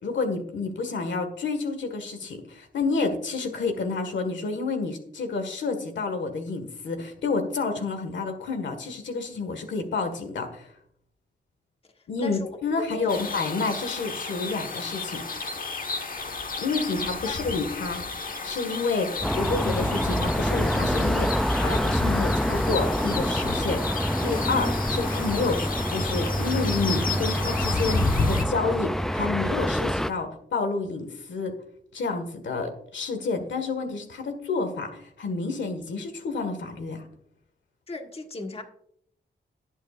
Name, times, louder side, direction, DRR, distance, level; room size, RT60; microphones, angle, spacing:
voice 1, 0.0-10.7 12.1-15.5 16.6-31.5 31.9-37.0, left 4 dB, 90° left, 6 dB, 1.7 m, -29 dB
voice 2, 12.8-13.2 17.2-17.4 37.9-38.6, left 3 dB, 30° left, 4 dB, 1.4 m, -36 dB
sound 1, 13.1-28.5, left 3 dB, 50° left, 1.4 m, -32 dB
sound 2, 19.2-30.1, equal, ahead, 0.3 m, -26 dB
18.5 x 8.3 x 2.5 m, 0.69 s
wide cardioid pair, 95°, 19 cm